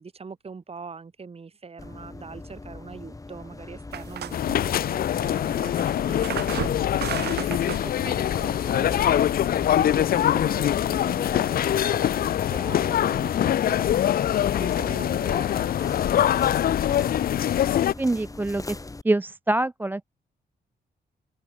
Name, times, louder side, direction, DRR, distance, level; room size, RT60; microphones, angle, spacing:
voice 1, 0.0-13.9 14.6-16.6, right 5 dB, 35° right, 3.5 m, -42 dB
sound 1, 1.8-19.0, left 2 dB, 20° left, 7.0 m, -41 dB
sound 2, 3.9-9.9, right 11 dB, 80° right, 1.3 m, -36 dB
sound 3, 4.3-17.9, left 11 dB, 60° left, 0.5 m, -23 dB
voice 2, 18.0-18.8 19.0-20.1, right 2 dB, 10° right, 0.4 m, -25 dB
cardioid pair, 100°, 17 cm